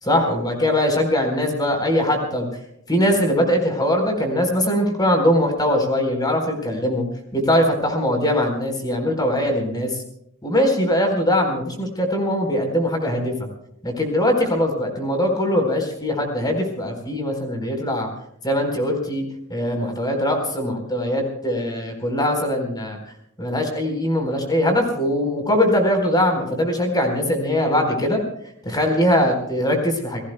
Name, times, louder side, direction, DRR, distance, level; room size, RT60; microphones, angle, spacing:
voice 1, 0.0-2.5 2.9-7.0 7.3-10.0 10.4-13.3 13.8-18.1 18.4-19.2 19.5-23.0 23.4-28.2 28.6-30.2, left 1 dB, 20° left, 4 dB, 4.2 m, -21 dB
29.0 x 18.5 x 2.3 m, 0.76 s
head